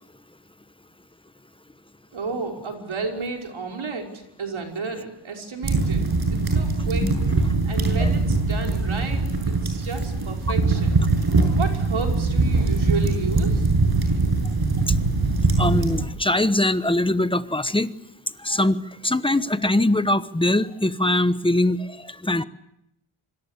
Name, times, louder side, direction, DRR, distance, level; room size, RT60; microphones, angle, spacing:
voice 1, 2.1-7.1 7.6-11.0 11.5-13.7, right 4 dB, 65° right, 2 dB, 5.5 m, -32 dB
sound 1, 5.6-16.0, right 3 dB, 45° right, 7.2 m, -22 dB
voice 2, 15.6-17.9 18.4-22.4, left 1 dB, 10° left, 12 dB, 1.1 m, -22 dB
26.0 x 25.5 x 8.3 m, 0.82 s
wide cardioid pair, 125°, 50 cm